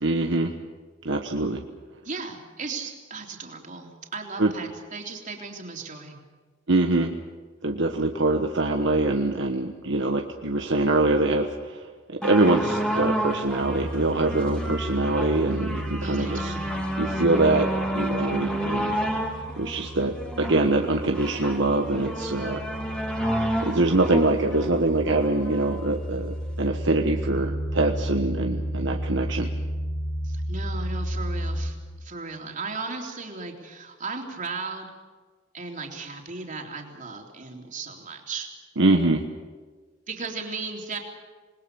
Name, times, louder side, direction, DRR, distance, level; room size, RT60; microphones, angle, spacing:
voice 1, 0.0-0.5 1.0-1.6 4.4-4.5 6.7-7.1 7.6-16.5 17.0-17.7 17.9-19.0 19.6-22.6 23.0-23.1 23.6-29.5 38.8-39.2, right 2 dB, 65° right, 3 dB, 1.3 m, -24 dB
voice 2, 2.0-6.2 16.0-16.7 30.2-34.9 35.5-38.5 40.1-41.0, right 4 dB, 40° right, 2 dB, 3.6 m, -36 dB
sound 1, 12.2-25.8 26.5-26.6, equal, 5° left, 3.2 m, -30 dB
sound 2, 13.6-31.7, equal, 80° left, 7.3 m, -33 dB
28.0 x 20.5 x 7.0 m, 1.4 s
head